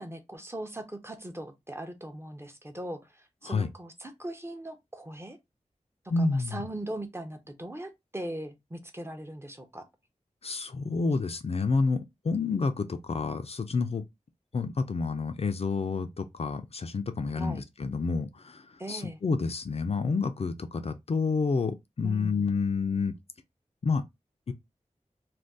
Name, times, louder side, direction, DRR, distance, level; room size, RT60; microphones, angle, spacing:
voice 1, 0.0-5.4 6.2-9.8 17.3-17.6 18.8-19.2 22.0-22.5, right 1 dB, 20° right, 0.6 m, -39 dB
voice 2, 6.1-6.6 10.4-14.0 14.5-23.2 23.8-24.0 24.5-24.6, left 4 dB, 55° left, 0.4 m, -29 dB
2.6 x 2.3 x 3.5 m
wide cardioid pair, 80°, 13 cm